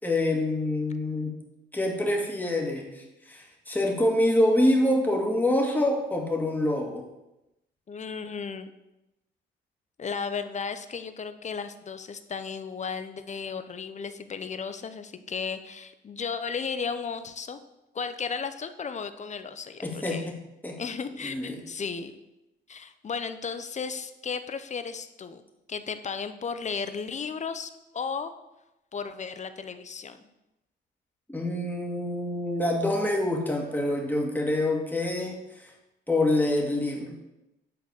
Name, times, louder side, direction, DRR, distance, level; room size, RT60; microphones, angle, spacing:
voice 1, 0.0-1.3 1.7-7.0 19.8-20.3 20.6-20.8 21.2-21.6 31.3-35.7 36.1-37.2, left 1 dB, 10° left, -1 dB, 2.2 m, -26 dB
voice 2, 7.9-8.7 10.0-17.6 17.9-20.3 20.8-22.1 22.7-25.4 25.7-28.3 28.9-30.2, left 5 dB, 35° left, 10 dB, 0.8 m, -34 dB
9.4 x 4.0 x 7.0 m, 0.93 s
cardioid pair, 90°, 20 cm